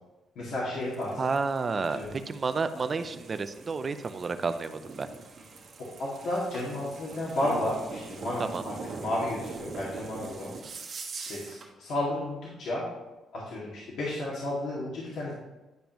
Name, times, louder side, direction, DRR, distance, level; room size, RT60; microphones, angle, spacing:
voice 1, 0.4-1.3 1.9-2.2 6.0-10.5 11.2-12.8 13.3-15.3, left 1 dB, 70° left, -7 dB, 2.1 m, -32 dB
sound 1, 0.7-11.7, right 4 dB, 55° right, 1.4 m, -43 dB
voice 2, 1.2-5.1 8.4-8.6, right 4 dB, 40° right, 10 dB, 0.6 m, -31 dB
10.5 x 5.2 x 3.0 m, 1.1 s
cardioid pair, 90°, 0 cm